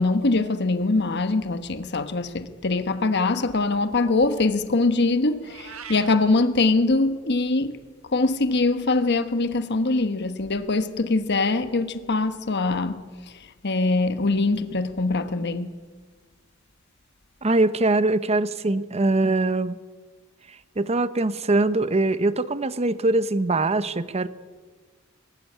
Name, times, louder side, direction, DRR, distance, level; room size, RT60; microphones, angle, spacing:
voice 1, 0.0-7.8 8.1-13.0 13.6-15.8, left 3 dB, 55° left, 1.2 m, -23 dB
Meow, 5.4-6.2, right 8 dB, 90° right, 1.2 m, -40 dB
voice 2, 17.4-19.8 20.8-24.3, right 2 dB, 30° right, 0.8 m, -22 dB
19.5 x 15.5 x 9.8 m
head